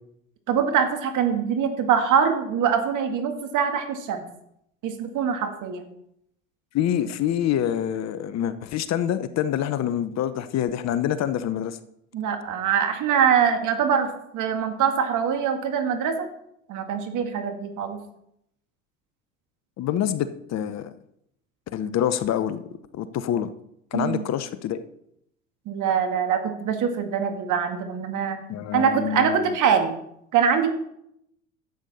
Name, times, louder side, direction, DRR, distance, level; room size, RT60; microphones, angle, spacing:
voice 1, 0.5-4.3 4.8-5.9 12.1-16.3 16.7-18.0 23.9-24.2 25.7-28.4 28.7-29.9 30.3-30.7, right 7 dB, 50° right, 6 dB, 1.9 m, -23 dB
voice 2, 6.7-11.8 19.8-20.9 21.7-22.6 22.9-23.5 23.9-24.8 28.5-29.4, left 10 dB, 45° left, 13 dB, 0.8 m, -26 dB
12.0 x 8.1 x 4.2 m, 0.76 s
hypercardioid pair, 80°, 38 cm